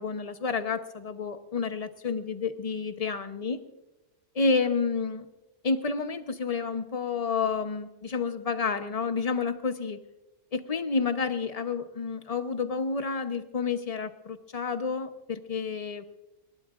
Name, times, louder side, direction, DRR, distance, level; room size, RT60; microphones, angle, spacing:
voice 1, 0.0-3.6 4.3-5.3 5.6-10.0 10.5-16.0, left 5 dB, 35° left, 9 dB, 0.9 m, -30 dB
28.5 x 12.5 x 2.5 m, 0.99 s
omnidirectional pair, 1.3 m